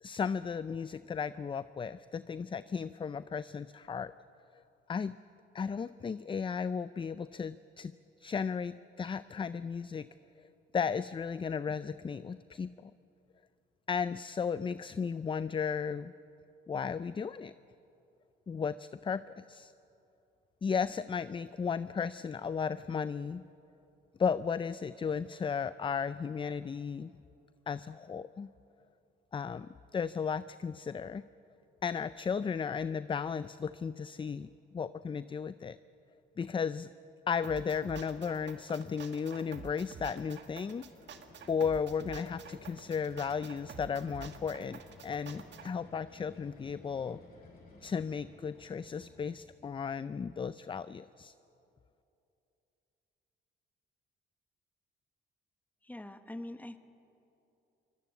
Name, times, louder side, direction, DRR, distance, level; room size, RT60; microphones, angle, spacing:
voice 1, 0.0-4.1 4.9-5.2 5.5-7.9 8.2-10.1 10.7-12.9 13.9-16.1 16.7-17.5 18.5-19.7 20.6-23.4 24.2-27.1 27.7-28.5 29.3-31.2 31.8-35.8 36.4-36.9 37.3-40.8 41.5-47.2 47.8-51.3, left 6 dB, 25° left, 15 dB, 0.4 m, -35 dB
sound 1, 37.4-45.7, right 7 dB, 65° right, 1.8 m, -48 dB
sound 2, 40.8-49.5, left 2 dB, 50° left, 6.5 m, -56 dB
voice 2, 55.8-56.8, left 1 dB, 10° left, 9 dB, 1.4 m, -43 dB
24.0 x 20.0 x 8.3 m, 2.8 s
cardioid pair, 90°, 20 cm